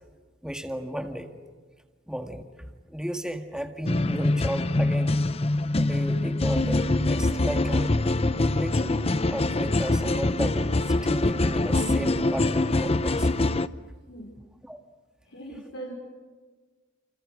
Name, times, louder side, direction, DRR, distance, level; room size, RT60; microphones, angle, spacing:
voice 1, 0.4-1.3 2.1-2.5 2.9-5.1 5.8-8.0 8.5-9.0 9.3-13.3 14.6-14.8, equal, 5° right, 4 dB, 2.0 m, -34 dB
sound 1, 3.9-13.7, left 2 dB, 30° left, 0.8 m, -24 dB
voice 2, 15.2-15.9, right 2 dB, 70° left, -2 dB, 5.6 m, -40 dB
29.5 x 29.0 x 6.5 m, 1.4 s
head